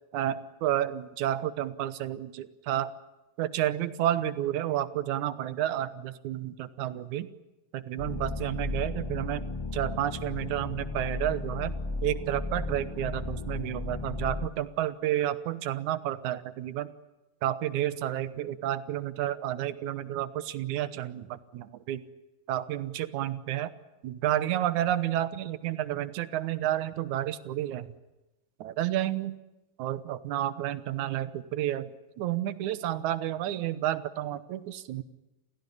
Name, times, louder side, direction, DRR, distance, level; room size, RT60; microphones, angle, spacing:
voice 1, 0.1-2.9 3.4-7.3 7.7-9.5 9.7-11.7 12.0-16.9 17.4-22.0 22.5-23.7 24.0-27.9 28.6-29.4 29.8-31.9 32.2-35.0, right 12 dB, 70° right, 14 dB, 2.3 m, -30 dB
sound 1, 8.0-14.5, left 3 dB, 25° left, 0.5 m, -35 dB
29.5 x 16.0 x 9.9 m, 1.0 s
omnidirectional pair, 3.9 m